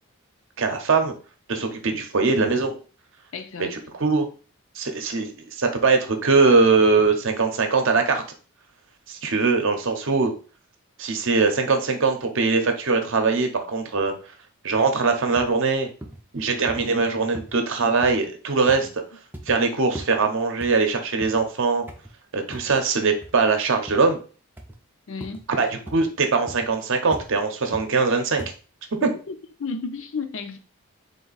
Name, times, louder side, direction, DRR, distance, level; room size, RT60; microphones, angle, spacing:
voice 1, 0.6-1.1 1.5-2.7 3.6-4.3 4.8-8.2 9.1-10.3 11.0-14.1 14.6-15.9 16.3-18.9 19.5-21.8 22.3-24.2 25.6-28.5, right 4 dB, 60° right, 0.7 m, -21 dB
voice 2, 3.3-3.8 18.8-18.9 25.1-25.5 29.0-30.6, left 4 dB, 60° left, 0.5 m, -32 dB
sound 1, 14.7-14.9 15.4-15.6 16.0-16.2 16.7-16.9 17.3-17.6 18.0-18.3 18.7-18.9 19.3-19.6 20.0-20.2 20.6-21.5 21.9-22.1 22.5-22.8 23.2-23.4 23.9-24.1 24.6-24.8 25.2-25.4 25.9-26.1 26.5-26.7 27.1-27.3 27.7-27.9 28.4-28.6, right 1 dB, 10° right, 0.4 m, -39 dB
3.7 x 2.7 x 3.9 m
head